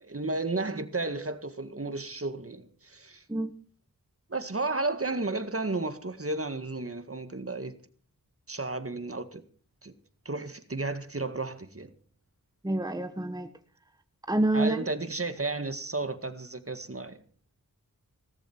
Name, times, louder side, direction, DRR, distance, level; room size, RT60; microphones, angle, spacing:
voice 1, 0.0-3.2 4.3-7.8 8.5-9.4 9.8-9.9 10.3-11.9 14.5-17.2, right 2 dB, 40° right, 1.9 m, -33 dB
voice 2, 12.6-13.5 14.3-14.9, right 2 dB, 10° right, 1.2 m, -27 dB
18.5 x 13.5 x 4.6 m
wide cardioid pair, 70°, 35 cm